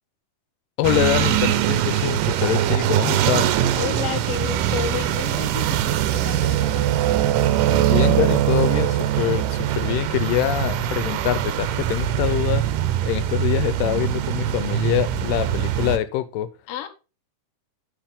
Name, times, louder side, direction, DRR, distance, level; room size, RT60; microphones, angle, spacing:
voice 1, 0.8-3.5 7.7-16.5, left 13 dB, 90° left, 2.3 m, -24 dB
sound 1, 0.8-16.0, right 12 dB, 90° right, 2.4 m, -22 dB
voice 2, 3.8-6.8 16.7-16.9, left 10 dB, 65° left, 1.5 m, -31 dB
9.0 x 5.3 x 3.6 m
omnidirectional pair, 3.8 m